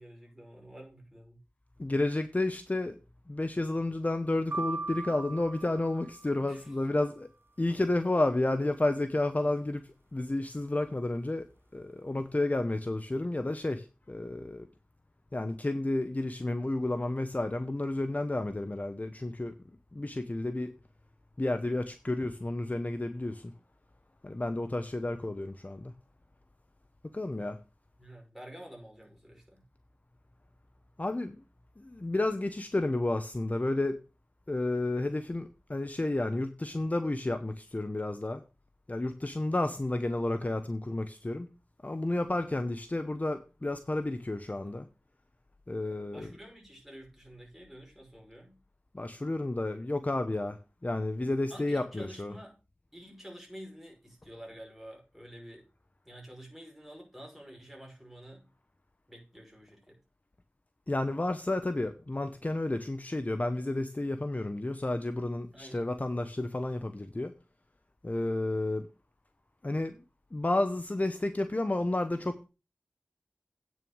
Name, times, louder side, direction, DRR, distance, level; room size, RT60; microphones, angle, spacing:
voice 1, 0.0-1.4 6.4-6.7 28.0-29.6 40.4-40.5 45.7-48.6 51.5-52.5 52.9-55.7 56.0-58.5 59.1-60.0 65.5-65.9, equal, 5° right, -1 dB, 5.8 m, -49 dB
voice 2, 1.8-3.0 3.3-7.3 7.6-11.5 11.7-14.7 15.3-19.5 19.9-20.7 21.4-23.5 24.2-25.9 27.1-27.6 31.0-31.4 31.8-34.0 34.5-38.4 38.9-41.5 41.8-44.9 45.7-46.3 48.9-52.4 60.9-67.3 68.0-68.9 69.6-70.0 70.3-72.5, left 2 dB, 40° left, 8 dB, 0.9 m, -31 dB
sound 1, 4.5-6.6, right 3 dB, 60° right, 0.8 m, -38 dB
9.1 x 6.3 x 6.3 m, 0.30 s
wide cardioid pair, 55°, 4 cm